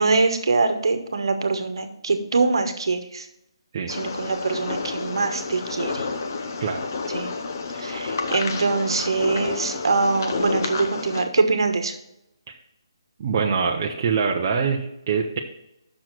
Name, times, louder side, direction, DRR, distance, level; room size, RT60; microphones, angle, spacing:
voice 1, 0.0-3.2 3.9-6.1 7.1-7.3 7.8-11.9, right 3 dB, 65° right, 7 dB, 1.2 m, -23 dB
sound 1, 3.9-11.2, left 4 dB, 40° left, 0.8 m, -30 dB
voice 2, 13.2-15.4, right 5 dB, 25° right, 0 dB, 0.6 m, -24 dB
6.3 x 6.2 x 6.1 m, 0.84 s
hypercardioid pair, 170°, 3 cm